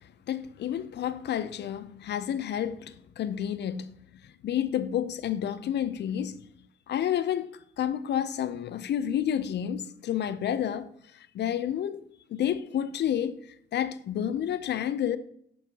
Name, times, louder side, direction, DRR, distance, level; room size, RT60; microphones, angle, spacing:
voice 1, 0.3-3.9 4.4-6.4 6.9-7.5 7.8-10.9 11.1-12.0 12.3-13.4 13.7-15.2, left 10 dB, 60° left, 0.5 m, -30 dB
11.5 x 5.5 x 2.9 m
cardioid pair, 90°, 20 cm